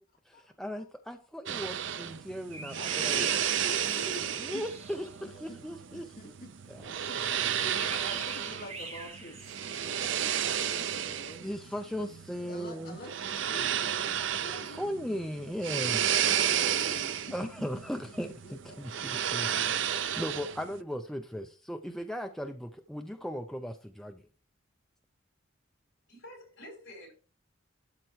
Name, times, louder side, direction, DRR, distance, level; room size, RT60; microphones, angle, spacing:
voice 1, 0.3-3.3 4.4-6.1 6.7-6.9 7.2-7.5 11.4-13.0 14.6-16.3 17.3-18.3 18.8-24.2, equal, ahead, 0.5 m, -37 dB
sound 1, 1.5-20.8, right 9 dB, 65° right, 0.5 m, -32 dB
sound 2, 2.5-5.2 7.5-10.0, right 3 dB, 30° right, 1.3 m, -44 dB
voice 2, 2.8-4.6 5.2-5.6 5.9-7.2 7.5-9.4 9.8-11.5 12.4-15.2 15.8-17.5 18.4-19.5, equal, 45° left, 2.2 m, -47 dB
voice 3, 26.1-27.1, left 1 dB, 65° left, 4.5 m, -48 dB
12.5 x 4.5 x 4.6 m
head